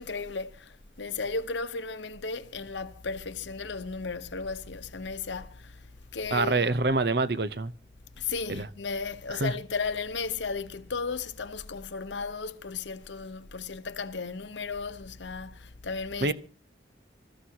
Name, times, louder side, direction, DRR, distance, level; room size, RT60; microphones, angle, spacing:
voice 1, 0.0-5.8 6.1-6.7 8.2-16.3, left 4 dB, 80° left, 1.0 m, -35 dB
voice 2, 6.3-7.7 8.5-8.7 9.3-9.5 16.2-16.3, right 3 dB, 60° right, 0.8 m, -26 dB
26.0 x 14.5 x 2.9 m
head